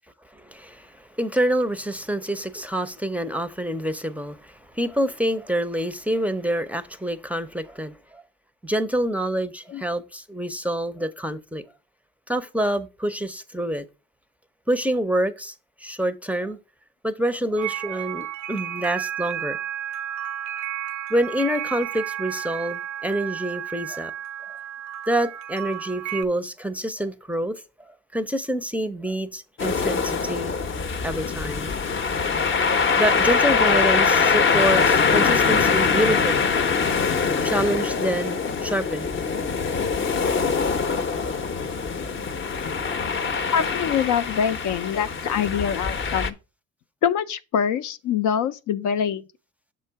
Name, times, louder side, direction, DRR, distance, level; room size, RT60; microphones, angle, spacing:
voice 1, 0.3-8.2 8.6-11.6 12.3-13.8 14.7-15.5 15.8-16.6 17.0-19.6 21.1-24.1 25.1-27.6 28.1-30.6 31.0-31.7 33.0-36.5 37.4-39.1 40.3-40.4 41.2-41.3 42.0-42.2 42.6-43.0, right 1 dB, 5° right, 0.5 m, -27 dB
sound 1, 17.6-26.2, right 11 dB, 70° right, 0.5 m, -32 dB
sound 2, 29.6-46.3, left 5 dB, 40° left, 0.6 m, -23 dB
voice 2, 43.5-46.4 47.0-49.2, left 8 dB, 80° left, 0.5 m, -24 dB
6.6 x 3.8 x 4.4 m
cardioid pair, 90°, 30 cm